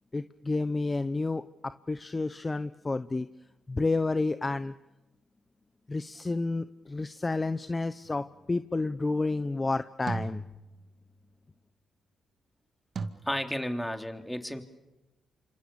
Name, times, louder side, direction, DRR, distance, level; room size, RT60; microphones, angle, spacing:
voice 1, 0.1-1.4 1.9-3.3 3.7-4.7 5.9-10.4, left 3 dB, 30° left, 12 dB, 0.9 m, -30 dB
sound 1, 8.0-8.5 10.1-11.3 13.0-13.1, right 4 dB, 60° right, 2.1 m, -38 dB
voice 2, 13.2-14.6, equal, 5° left, 5 dB, 3.3 m, -32 dB
27.5 x 27.0 x 7.1 m, 1.0 s
supercardioid pair, 60°, 0 cm